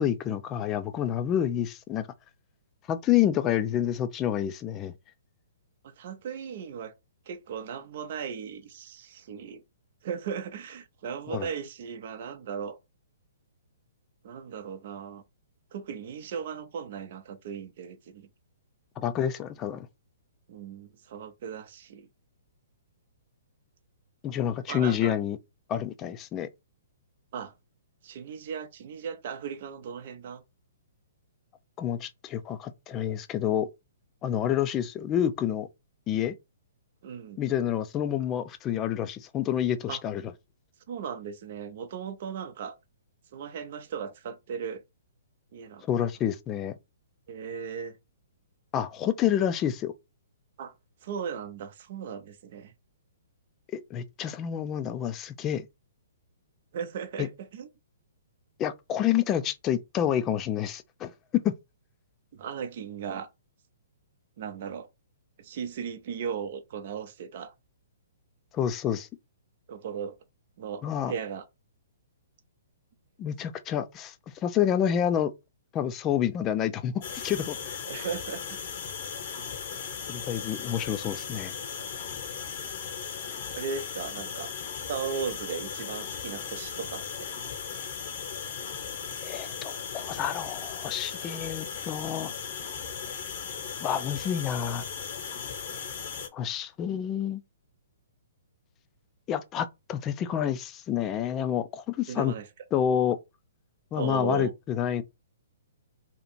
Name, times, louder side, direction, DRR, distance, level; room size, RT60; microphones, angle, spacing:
voice 1, 0.0-2.1 2.9-4.9 11.3-11.5 19.0-19.9 24.2-25.4 25.7-26.5 31.8-33.7 34.2-35.7 36.1-36.4 37.4-40.3 45.9-46.7 48.7-49.9 53.7-55.6 57.2-57.3 58.6-61.1 61.4-61.6 68.5-69.1 70.8-71.1 73.2-74.1 74.4-75.3 75.7-77.8 80.1-81.5 89.2-92.3 93.8-94.8 96.3-97.4 99.3-102.3 102.7-103.2 103.9-105.0, left 10 dB, 25° left, 0.4 m, -28 dB
voice 2, 5.8-6.9 7.3-9.6 10.0-12.8 14.2-15.2 15.7-18.3 20.5-22.1 24.7-25.1 27.3-27.5 28.0-30.4 37.0-37.4 39.9-40.0 40.9-42.8 43.3-44.8 45.5-45.8 47.3-48.0 50.6-50.7 51.0-52.7 56.7-57.7 62.3-63.3 64.4-64.9 65.4-67.5 69.7-70.2 70.6-71.4 77.9-78.7 83.5-84.5 84.9-87.3 102.1-102.5 104.0-104.5, right 7 dB, 50° right, 0.6 m, -37 dB
sound 1, 77.0-96.3, left 7 dB, 50° left, 0.9 m, -37 dB
2.9 x 2.4 x 4.3 m
figure-of-eight pair, 120°, 0 cm